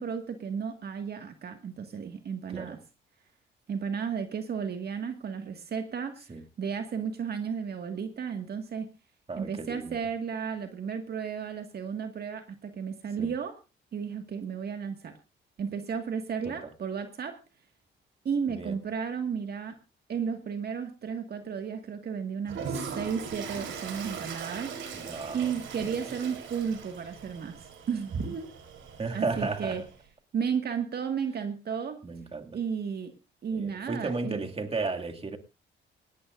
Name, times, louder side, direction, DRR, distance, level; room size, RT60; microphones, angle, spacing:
voice 1, 0.0-2.8 3.7-6.2 6.6-8.9 9.4-13.5 13.9-15.1 15.6-17.3 18.3-19.8 20.1-28.5 29.1-29.8 30.3-32.0 32.5-33.1 33.4-34.4, right 6 dB, 55° right, 6 dB, 1.9 m, -33 dB
voice 2, 9.3-10.0 13.2-13.3 16.4-16.7 18.5-18.8 24.9-26.1 29.0-29.8 32.0-32.6 33.5-35.4, right 3 dB, 30° right, 4 dB, 2.3 m, -34 dB
Toilet flush, 22.4-30.0, right 6 dB, 75° right, 3.7 m, -40 dB
18.0 x 18.0 x 2.5 m, 0.31 s
cardioid pair, 90°, 20 cm